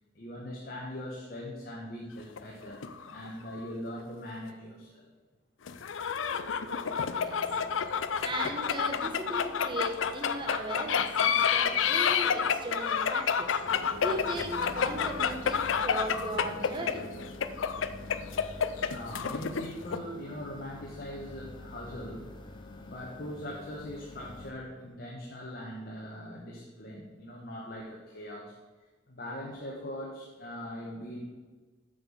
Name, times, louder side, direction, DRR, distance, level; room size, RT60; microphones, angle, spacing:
voice 1, 0.1-5.1 5.8-6.1 18.8-22.3 22.9-28.5 29.1-31.3, equal, 50° left, -2 dB, 1.3 m, -41 dB
sound 1, 2.2-3.7 4.0-4.1 5.7-20.0, left 7 dB, 80° left, 0.5 m, -29 dB
sound 2, 6.3-17.3, right 3 dB, 55° right, 1.0 m, -49 dB
voice 2, 6.9-7.4 8.1-17.1, right 1 dB, 25° right, 3 dB, 1.1 m, -38 dB
sound 3, 13.7-24.5, left 2 dB, 25° left, 0.8 m, -46 dB
7.7 x 6.8 x 5.6 m, 1.3 s
head